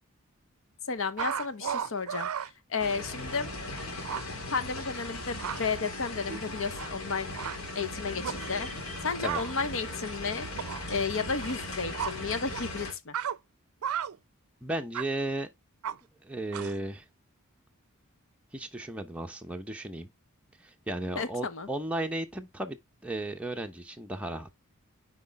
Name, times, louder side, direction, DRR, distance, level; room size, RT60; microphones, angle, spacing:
voice 1, 0.9-3.5 4.5-7.3 7.7-10.5 10.9-13.1 21.2-21.7, left 4 dB, 65° left, 0.9 m, -33 dB
sound 1, 1.2-2.5 3.3-3.4 3.7-4.2 5.1-5.6 6.3-7.1 7.4-7.6 8.2-8.5 9.2-9.5 10.5-10.9 11.4-11.5 11.9-12.1 12.5-12.6 13.1-13.4 13.8-14.2 14.9-15.1 15.8-16.0 16.5-16.8, right 8 dB, 85° right, 0.4 m, -34 dB
sound 2, 2.8-12.9, left 2 dB, 85° left, 2.3 m, -38 dB
voice 2, 14.6-15.5 16.2-17.0 18.5-20.1 20.6-22.8 23.0-24.5, right 1 dB, 5° right, 0.9 m, -34 dB
8.2 x 4.9 x 3.4 m
head